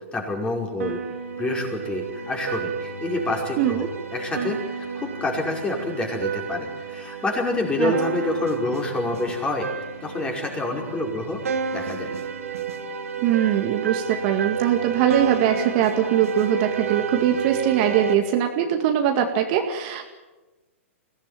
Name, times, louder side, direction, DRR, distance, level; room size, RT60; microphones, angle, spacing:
voice 1, 0.1-1.0 1.4-9.7 10.0-11.4 11.7-12.1, left 2 dB, 15° left, 1 dB, 5.3 m, -27 dB
sound 1, 0.8-18.1, right 6 dB, 75° right, 2.8 m, -31 dB
voice 2, 3.6-3.9 7.8-7.9 13.2-20.1, right 10 dB, 40° right, 5 dB, 2.0 m, -22 dB
23.0 x 17.0 x 9.1 m, 1.2 s
hypercardioid pair, 125°, 8 cm